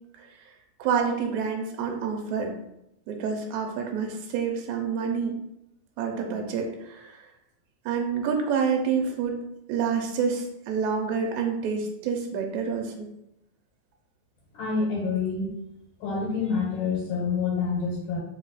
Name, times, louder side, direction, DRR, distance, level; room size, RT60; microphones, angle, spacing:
voice 1, 0.8-2.5 3.1-5.4 6.0-7.2 7.9-9.4 9.7-13.1, right 6 dB, 80° right, 2 dB, 1.9 m, -28 dB
voice 2, 14.5-15.5 16.0-18.2, left 5 dB, 90° left, -4 dB, 2.6 m, -27 dB
5.1 x 2.3 x 4.0 m, 0.85 s
omnidirectional pair, 3.6 m